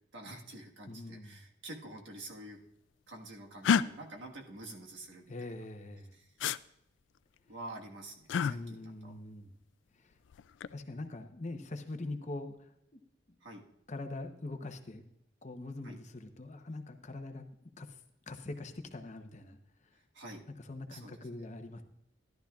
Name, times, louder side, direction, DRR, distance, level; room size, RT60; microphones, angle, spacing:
voice 1, 0.1-2.6 3.1-5.5 6.1-6.3 7.5-9.1 13.4-13.6 15.8-16.0 20.1-20.4 20.9-21.4, right 1 dB, 75° right, 1 dB, 1.5 m, -48 dB
voice 2, 0.8-1.4 5.3-6.1 8.4-9.5 9.9-10.2 10.7-12.7 13.9-15.0 15.4-17.4 17.8-18.0 18.3-19.6 20.6-21.8, left 2 dB, 40° left, 6 dB, 0.8 m, -43 dB
sound 1, 3.6-3.8 6.4-6.6 8.3-8.5 10.3-10.7, left 7 dB, 75° left, 0.3 m, -27 dB
14.0 x 11.5 x 2.4 m, 0.80 s
head